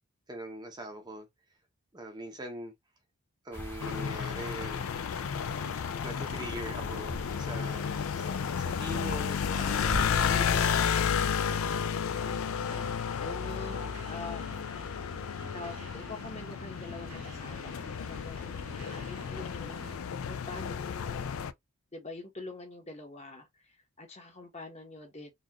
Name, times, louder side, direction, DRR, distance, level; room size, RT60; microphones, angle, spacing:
voice 1, 0.3-1.3 1.9-2.7 3.4-4.8 6.0-10.9, right 1 dB, 20° right, 0.7 m, -42 dB
sound 1, 3.5-10.8, equal, 10° left, 0.9 m, -43 dB
sound 2, 3.8-21.5, left 7 dB, 65° left, 0.4 m, -32 dB
sound 3, 9.5-20.0, right 1 dB, 90° right, 1.4 m, -49 dB
voice 2, 11.9-14.7 15.5-21.5 21.9-25.3, left 2 dB, 30° left, 1.1 m, -45 dB
4.1 x 2.5 x 2.9 m
head